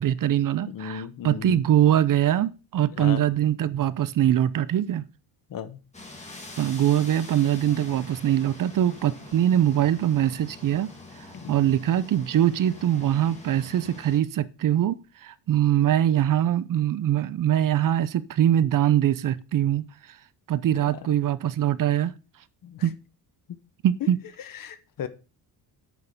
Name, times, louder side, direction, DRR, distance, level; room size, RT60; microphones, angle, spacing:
voice 1, 0.0-5.1 6.6-10.9 11.2-19.8 20.5-22.1 22.8-22.9 23.8-24.2, right 11 dB, 50° right, 0.7 m, -23 dB
voice 2, 0.7-1.6 3.0-3.2 5.5-5.8 11.4-11.7 20.8-21.1 22.6-22.9 24.0-24.1 24.4-25.1, left 8 dB, 55° left, 1.3 m, -36 dB
sound 1, 5.9-14.2, left 2 dB, 15° left, 2.9 m, -44 dB
8.3 x 6.5 x 6.7 m
cardioid pair, 130°, 40 cm